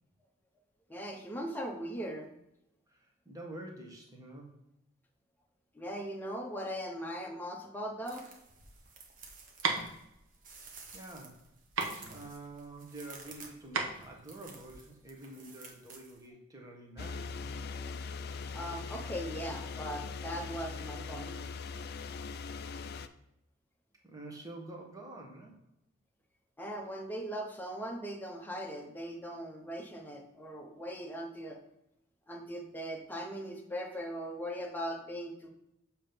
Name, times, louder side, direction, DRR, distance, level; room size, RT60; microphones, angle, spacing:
voice 1, 0.9-2.3 5.7-8.3 18.5-21.3 26.6-31.6 32.3-35.5, equal, 10° left, 1 dB, 0.8 m, -39 dB
voice 2, 2.9-4.5 10.9-11.5 12.1-17.6 24.0-25.6, right 2 dB, 15° right, 0 dB, 1.2 m, -47 dB
sound 1, 8.0-16.3, right 4 dB, 40° right, 1.0 m, -53 dB
sound 2, 8.5-15.1, right 4 dB, 65° right, 0.9 m, -37 dB
sound 3, 17.0-23.1, left 4 dB, 50° left, 0.3 m, -41 dB
7.2 x 3.0 x 5.2 m, 0.81 s
head